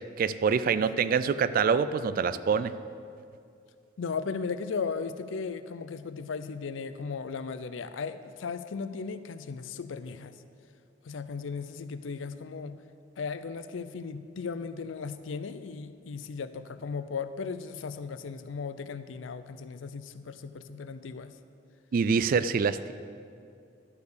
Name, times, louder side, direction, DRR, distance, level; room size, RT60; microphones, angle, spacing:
voice 1, 0.2-2.7 21.9-22.9, right 6 dB, 50° right, 14 dB, 0.3 m, -25 dB
voice 2, 4.0-10.4 11.0-12.8 13.2-21.3, left 5 dB, 80° left, 12 dB, 0.5 m, -36 dB
11.5 x 4.7 x 6.7 m, 2.4 s
head